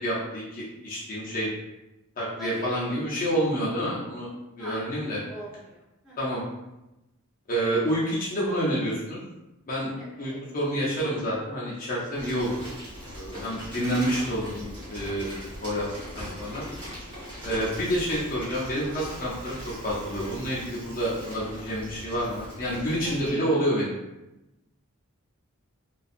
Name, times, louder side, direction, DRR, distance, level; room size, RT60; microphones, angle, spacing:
voice 1, 0.0-1.5 2.2-4.3 4.6-5.2 6.2-6.4 7.5-9.2 9.7-12.6 13.1-15.3 15.6-15.8 16.1-16.7 17.4-19.6 19.8-23.9, equal, 40° left, -6 dB, 0.5 m, -28 dB
voice 2, 2.4-3.0 4.6-4.9 5.3-6.2 9.9-10.4 13.4-13.7 21.2-21.4 23.0-23.5, right 2 dB, ahead, -10 dB, 0.8 m, -40 dB
Bicycle, 12.2-23.3, equal, 20° right, 1.1 m, -40 dB
2.5 x 2.2 x 2.5 m, 0.96 s
head